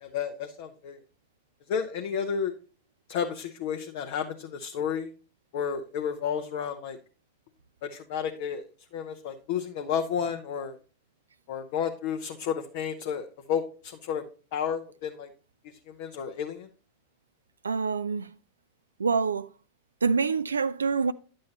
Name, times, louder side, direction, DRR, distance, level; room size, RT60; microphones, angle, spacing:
voice 1, 0.0-1.0 1.7-2.5 3.1-5.1 5.5-7.0 7.8-8.6 8.9-10.8 11.5-14.2 14.5-15.3 15.9-16.7, left 7 dB, 50° left, 0.8 m, -31 dB
voice 2, 17.6-18.3 19.0-19.5 20.0-21.1, right 5 dB, 75° right, 0.4 m, -26 dB
10.5 x 7.5 x 2.9 m
figure-of-eight pair, 90°, 0 cm